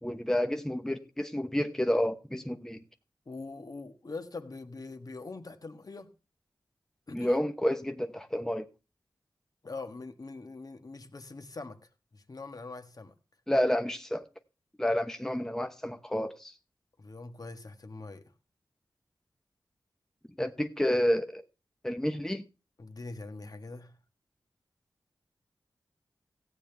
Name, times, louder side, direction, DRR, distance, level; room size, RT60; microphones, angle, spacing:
voice 1, 0.0-2.8 7.1-8.6 13.5-14.2 14.8-16.5 20.4-21.4 21.8-22.4, left 1 dB, 5° left, 1.0 m, -29 dB
voice 2, 3.2-6.1 7.1-7.4 9.6-11.8 12.1-13.1 17.0-18.3 22.8-23.9, left 3 dB, 50° left, 1.5 m, -43 dB
15.5 x 8.9 x 3.4 m
cardioid pair, 55°, 8 cm